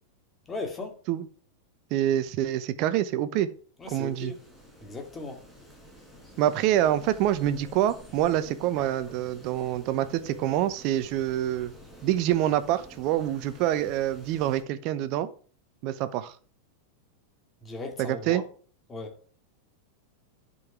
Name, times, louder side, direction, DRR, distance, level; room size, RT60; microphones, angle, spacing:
voice 1, 0.5-1.0 3.8-4.4 4.8-5.4 17.6-18.4 18.9-19.1, left 3 dB, 20° left, 2.3 m, -37 dB
voice 2, 1.9-3.5 3.9-4.3 6.4-11.7 12.0-15.3 15.8-16.3 18.0-18.4, right 12 dB, 45° right, 0.9 m, -26 dB
sound 1, 3.8-14.6, right 1 dB, ahead, 4.9 m, -49 dB
11.0 x 5.6 x 4.6 m
figure-of-eight pair, 90°, 0 cm